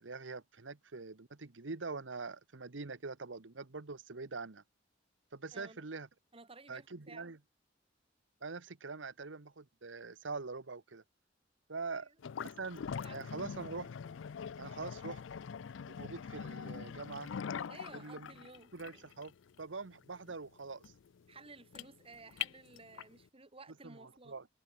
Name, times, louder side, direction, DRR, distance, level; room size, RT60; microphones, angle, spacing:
voice 1, 0.0-4.6 5.3-6.1 6.7-7.4 8.4-11.0 11.7-12.1 12.4-13.9 14.6-15.2 15.9-17.3 17.9-18.3 18.7-20.9 23.8-24.5, right 4 dB, 85° right, 1.2 m, -44 dB
voice 2, 5.5-5.9 6.3-7.3 11.9-12.2 13.0-13.4 17.7-19.1 21.3-24.3, right 3 dB, 30° right, 2.7 m, -55 dB
sound 1, 12.2-23.2, left 7 dB, 90° left, 0.4 m, -43 dB
head